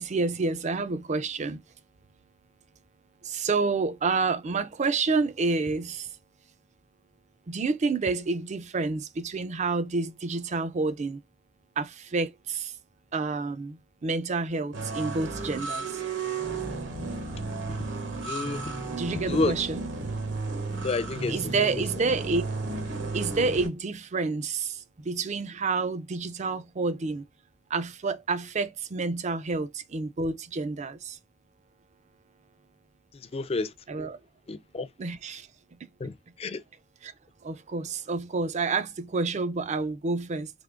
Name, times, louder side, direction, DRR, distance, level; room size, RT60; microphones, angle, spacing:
voice 1, 0.0-1.6 3.2-6.1 7.5-11.2 11.8-12.7 13.1-16.0 19.0-19.8 21.3-22.4 23.1-27.2 27.7-31.2 33.9-34.2 35.0-35.5 37.0-37.1 37.4-40.5, right 4 dB, 40° right, 0.4 m, -29 dB
sound 1, 14.7-23.7, right 3 dB, 75° right, 1.0 m, -33 dB
voice 2, 18.2-18.6 19.2-19.6 20.8-21.5 33.1-33.7 34.5-34.9 36.0-36.1 36.4-36.6, left 3 dB, 30° left, 0.4 m, -29 dB
3.5 x 2.9 x 3.7 m
head